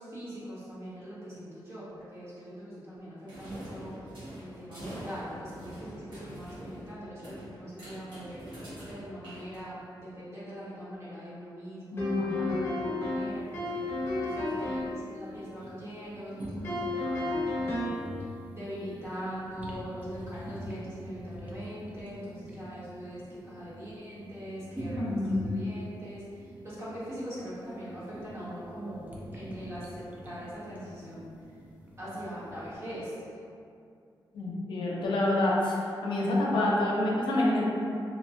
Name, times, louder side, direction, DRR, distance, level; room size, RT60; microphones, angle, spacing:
voice 1, 0.0-8.4 8.9-13.8 14.2-17.9 18.5-31.3 32.0-33.1, equal, 35° right, -10 dB, 1.1 m, -42 dB
sound 1, 3.3-10.0, equal, 70° right, 1.1 m, -44 dB
voice 2, 11.9-12.4 25.0-25.5 34.3-35.8 36.0-37.6, left 1 dB, 90° left, -4 dB, 0.5 m, -27 dB
sound 2, 12.0-15.0 16.6-18.1, left 2 dB, 30° left, 0.8 m, -32 dB
sound 3, 13.1-32.7, equal, 20° right, 0.4 m, -45 dB
2.9 x 2.1 x 2.7 m, 2.5 s
wide cardioid pair, 120°, 8 cm